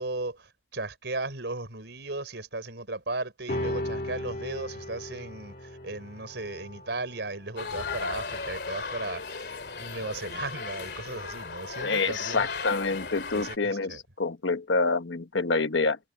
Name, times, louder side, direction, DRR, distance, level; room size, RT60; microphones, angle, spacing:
voice 1, 0.0-12.5 13.3-14.0, right 2 dB, 70° right, 4.4 m, -36 dB
sound 1, 3.5-10.2, left 1 dB, 50° left, 2.0 m, -38 dB
sound 2, 7.6-13.6, left 4 dB, 65° left, 2.8 m, -36 dB
voice 2, 11.8-16.0, left 3 dB, 85° left, 1.3 m, -27 dB
head